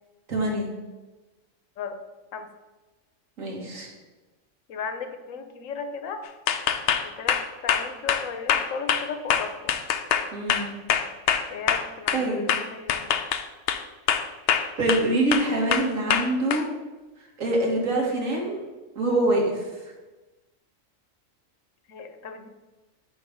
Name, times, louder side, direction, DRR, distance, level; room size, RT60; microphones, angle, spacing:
voice 1, 0.3-0.7 3.4-3.9 10.3-10.7 12.1-12.5 14.8-16.6 17.4-18.6 19.0-19.9, right 1 dB, 80° right, -1 dB, 2.1 m, -25 dB
voice 2, 4.7-6.2 7.0-9.8 11.5-13.2 21.9-22.5, left 5 dB, 80° left, 8 dB, 1.1 m, -36 dB
sound 1, 6.5-12.2 12.5-13.8 14.1-15.0 15.3-16.6, left 8 dB, 60° left, 0.7 m, -24 dB
8.0 x 3.2 x 6.4 m, 1.2 s
omnidirectional pair, 1.4 m